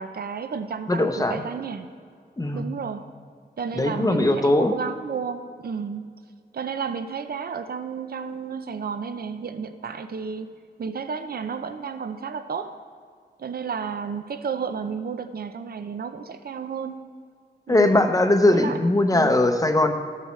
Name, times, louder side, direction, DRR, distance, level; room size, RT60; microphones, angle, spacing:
voice 1, 0.0-1.8 2.5-3.1 3.6-6.1 6.5-10.5 10.8-12.7 13.4-17.0 17.7-18.1 18.5-18.8 19.1-19.3, right 6 dB, 60° right, 10 dB, 0.5 m, -32 dB
voice 2, 0.9-1.4 2.4-2.7 3.7-4.7 17.7-19.9, left 1 dB, 20° left, 6 dB, 0.7 m, -20 dB
13.5 x 8.3 x 3.2 m, 2.1 s
wide cardioid pair, 115°, 18 cm